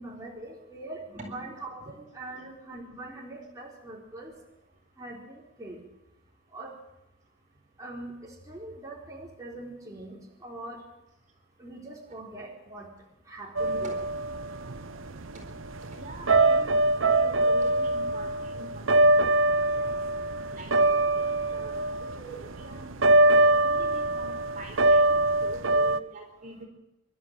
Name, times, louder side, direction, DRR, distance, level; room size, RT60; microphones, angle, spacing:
voice 1, 0.0-4.3 5.0-5.8 6.5-6.7 7.8-10.8 11.6-12.9 13.3-14.0, right 2 dB, 15° right, -3 dB, 4.5 m, -42 dB
sound 1, 13.6-26.0, right 2 dB, 65° right, 0.9 m, -24 dB
voice 2, 15.8-16.7 17.2-19.1 19.8-19.9 20.5-22.9 23.6-26.7, right 2 dB, 35° right, 1 dB, 4.3 m, -45 dB
25.5 x 13.0 x 9.1 m, 0.89 s
head